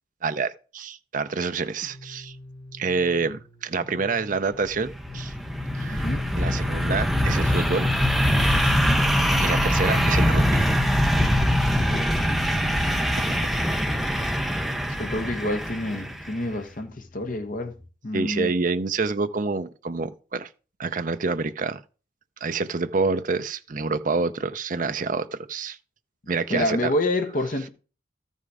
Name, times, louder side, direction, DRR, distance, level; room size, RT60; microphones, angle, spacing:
voice 1, 0.2-2.4 2.7-5.3 5.7-6.1 6.3-7.9 8.4-8.8 9.4-10.7 12.9-13.1 18.1-20.5 20.8-21.8 22.4-25.8 26.3-26.9, right 4 dB, 45° right, 0.6 m, -27 dB
sound 1, 1.8-17.8, left 1 dB, 15° left, 6.0 m, -48 dB
sound 2, 4.7-16.4, equal, ahead, 0.8 m, -23 dB
voice 2, 5.9-6.3 8.7-9.1 11.9-12.3 15.0-17.7 18.0-18.5 26.5-27.7, left 1 dB, 45° left, 1.1 m, -28 dB
13.5 x 5.5 x 4.8 m
head